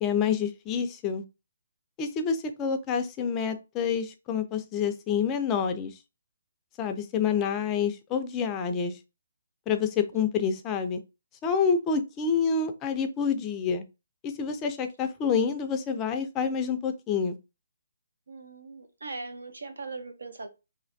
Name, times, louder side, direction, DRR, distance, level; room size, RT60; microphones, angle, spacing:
voice 1, 0.0-1.2 2.0-5.9 6.8-9.0 9.7-11.0 11.4-13.8 14.2-17.4, left 6 dB, 15° left, 0.3 m, -28 dB
voice 2, 18.3-20.5, right 3 dB, 85° right, 0.8 m, -40 dB
3.2 x 2.5 x 2.5 m
hypercardioid pair, 165°, 0 cm